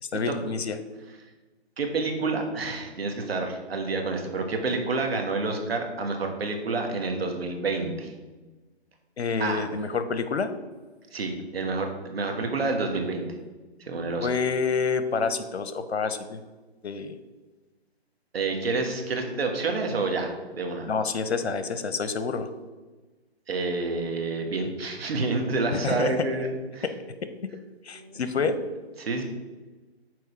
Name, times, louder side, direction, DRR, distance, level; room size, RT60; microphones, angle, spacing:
voice 1, 0.1-0.8 9.2-10.5 14.2-16.4 16.8-17.1 20.9-22.5 25.7-26.4 27.8-28.6, left 5 dB, 80° left, 10 dB, 0.8 m, -28 dB
voice 2, 1.8-8.1 9.4-9.7 11.1-13.3 13.8-14.3 18.3-20.9 23.5-26.9 27.9-28.2 29.0-29.2, right 3 dB, 65° right, 3 dB, 1.4 m, -28 dB
6.3 x 4.5 x 4.8 m, 1.3 s
figure-of-eight pair, 145°, 32 cm